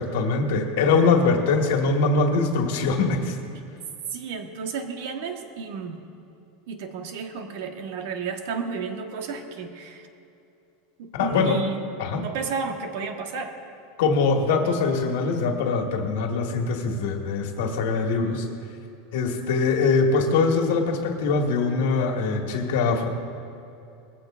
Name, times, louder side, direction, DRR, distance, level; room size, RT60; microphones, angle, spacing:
voice 1, 0.0-3.4 11.1-11.6 12.0-12.3 14.0-18.5 19.1-23.1, left 4 dB, 70° left, 3 dB, 1.7 m, -22 dB
voice 2, 4.1-6.0 6.7-10.1 11.0-11.8 12.1-13.6, right 5 dB, 60° right, 4 dB, 1.4 m, -32 dB
21.5 x 15.5 x 2.6 m, 2.7 s
supercardioid pair, 170°, 0 cm